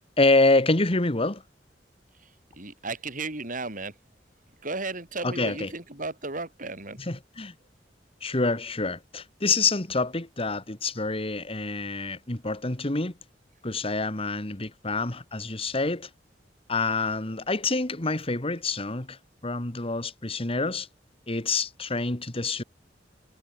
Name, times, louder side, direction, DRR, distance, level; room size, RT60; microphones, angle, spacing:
voice 1, 0.2-1.4 5.2-5.7 7.1-7.5 8.2-13.1 13.6-16.1 16.7-19.2 19.4-20.9 21.3-22.6, left 3 dB, 35° left, 1.8 m, -26 dB
voice 2, 2.5-4.0 4.6-7.0, right 3 dB, 50° right, 5.7 m, -34 dB
head